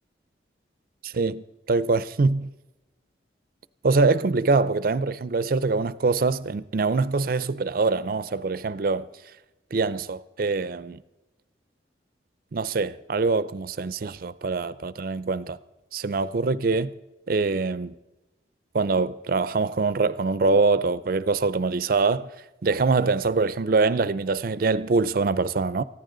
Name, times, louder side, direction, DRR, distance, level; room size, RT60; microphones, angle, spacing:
voice 1, 1.0-2.5 3.8-9.1 9.7-11.0 12.5-15.6 15.9-16.9 17.3-17.9 18.7-22.3 22.6-25.8, right 3 dB, 50° right, 0.4 m, -24 dB
20.0 x 14.5 x 3.9 m
head